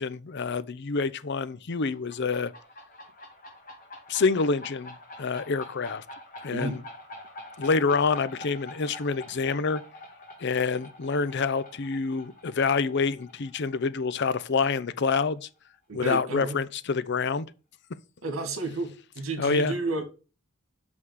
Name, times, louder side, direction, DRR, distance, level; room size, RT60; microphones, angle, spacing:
voice 1, 0.0-2.5 4.1-6.0 6.4-6.8 7.6-9.8 10.4-15.5 15.9-17.5 19.4-19.7, left 4 dB, 55° left, 0.6 m, -27 dB
sound 1, 1.9-15.3, left 1 dB, 40° left, 2.2 m, -46 dB
voice 2, 15.9-16.6 18.2-20.0, right 2 dB, 85° right, 2.0 m, -31 dB
6.2 x 5.6 x 6.4 m
head